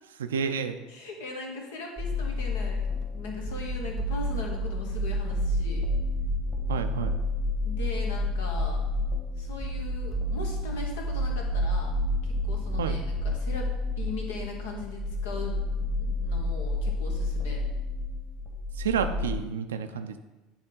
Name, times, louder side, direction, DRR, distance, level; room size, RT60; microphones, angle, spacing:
voice 1, 0.2-0.7 6.7-7.2 12.8-13.0 18.8-20.2, right 6 dB, 75° right, 8 dB, 0.4 m, -30 dB
voice 2, 0.9-5.9 7.6-8.8 9.4-11.9 12.2-17.6, left 3 dB, 70° left, 1 dB, 1.2 m, -39 dB
sound 1, 2.0-19.4, left 1 dB, 20° left, 1.6 m, -30 dB
8.8 x 3.5 x 3.9 m, 1.1 s
figure-of-eight pair, 70°, 0 cm